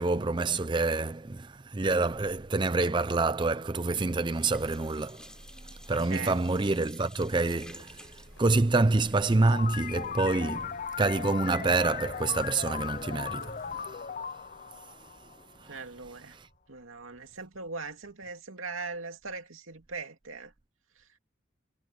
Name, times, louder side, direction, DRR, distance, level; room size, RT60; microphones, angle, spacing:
voice 1, 0.0-5.3 5.9-14.0 15.6-15.7 16.3-16.5, right 3 dB, 25° right, 0.5 m, -27 dB
sound 1, 3.6-4.0 4.3-11.1 11.5-11.6 11.9-12.0, left 1 dB, 5° left, 8.0 m, -53 dB
voice 2, 6.1-6.4 15.7-16.4 16.7-20.5 21.0-21.1, right 4 dB, 90° right, 2.5 m, -40 dB
sound 2, 7.3-13.9, left 1 dB, 85° left, 5.8 m, -54 dB
sound 3, 9.5-15.8, left 7 dB, 40° left, 0.5 m, -38 dB
head